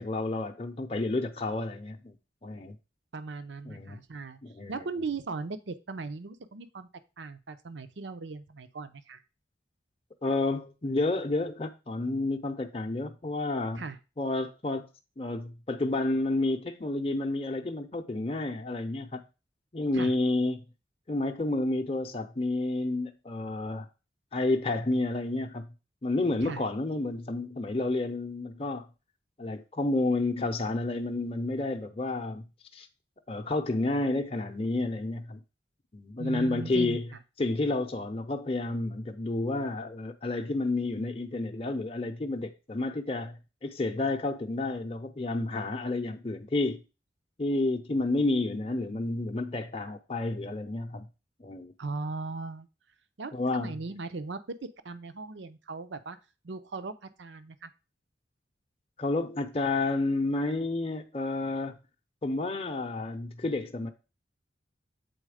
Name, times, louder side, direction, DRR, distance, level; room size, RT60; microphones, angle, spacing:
voice 1, 0.0-2.2 2.4-2.8 3.7-4.0 4.4-4.8 10.2-13.8 14.2-14.9 15.2-19.2 19.7-20.6 21.1-23.9 24.3-25.6 26.0-28.8 29.4-32.4 32.7-32.9 33.3-35.4 35.9-37.1 37.4-46.8 47.4-51.1 51.4-51.7 53.3-53.8 59.0-61.8 62.2-63.9, left 2 dB, 30° left, 0.6 m, -30 dB
voice 2, 3.1-4.4 4.7-6.9 7.2-9.2 13.8-14.0 19.9-20.1 26.4-26.6 36.2-37.0 51.8-52.7 53.2-56.2 56.4-57.7, right 3 dB, 80° right, 0.7 m, -38 dB
7.8 x 4.0 x 4.9 m
head